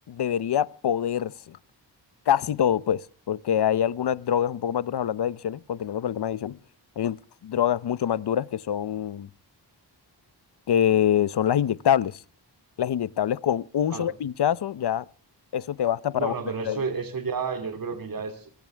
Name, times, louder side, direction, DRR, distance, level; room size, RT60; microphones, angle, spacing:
voice 1, 0.1-1.6 2.3-6.6 7.0-7.2 7.4-9.3 10.7-12.2 12.8-15.1 15.5-16.3 16.7-16.8, left 10 dB, 65° left, 0.8 m, -25 dB
voice 2, 16.1-18.5, right 5 dB, 50° right, 2.8 m, -31 dB
24.5 x 15.5 x 3.4 m
wide cardioid pair, 115°, 43 cm